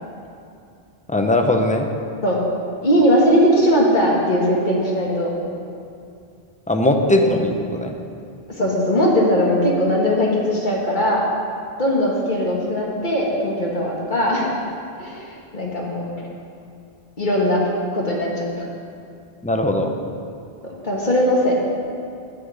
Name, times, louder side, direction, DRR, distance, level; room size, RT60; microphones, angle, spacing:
voice 1, 1.1-1.9 6.7-7.9 19.4-19.9, left 1 dB, 10° left, 4 dB, 0.6 m, -19 dB
voice 2, 2.8-5.4 7.0-7.3 8.6-11.2 11.8-14.5 15.0-16.1 17.2-17.6 17.9-18.7 20.8-21.5, equal, 50° left, -3 dB, 2.0 m, -19 dB
9.9 x 5.7 x 8.4 m, 2.5 s
omnidirectional pair, 1.1 m